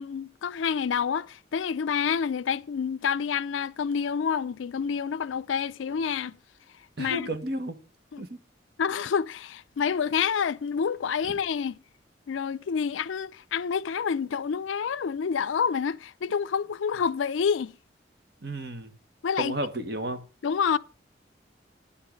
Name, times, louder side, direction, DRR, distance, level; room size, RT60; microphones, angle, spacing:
voice 1, 0.0-6.4 7.0-7.3 8.1-8.3 8.8-11.8 12.3-17.8 19.2-19.6 20.4-20.8, left 6 dB, 90° left, 0.4 m, -28 dB
voice 2, 7.0-7.8 8.2-8.4 18.4-18.9 19.4-20.2, right 1 dB, 55° right, 1.3 m, -32 dB
10.0 x 5.6 x 6.6 m
head